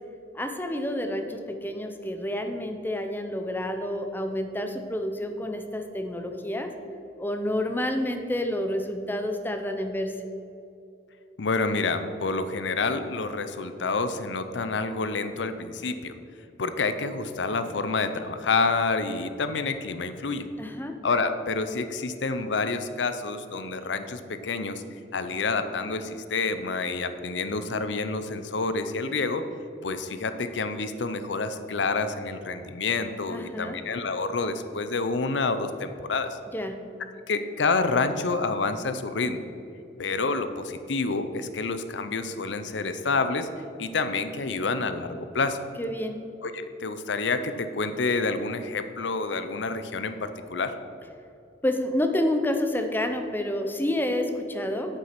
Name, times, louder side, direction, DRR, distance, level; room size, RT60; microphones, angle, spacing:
voice 1, 0.3-6.7 7.2-10.1 20.6-21.0 33.3-33.8 36.5-36.8 45.8-46.2 51.6-55.0, left 1 dB, 10° left, 6 dB, 0.7 m, -29 dB
voice 2, 11.4-16.2 16.6-20.5 21.0-24.8 25.1-29.4 29.8-36.4 37.2-39.4 40.0-43.5 43.8-45.6 46.4-50.7, left 4 dB, 90° left, 10 dB, 0.7 m, -28 dB
8.3 x 8.0 x 5.9 m, 2.7 s
head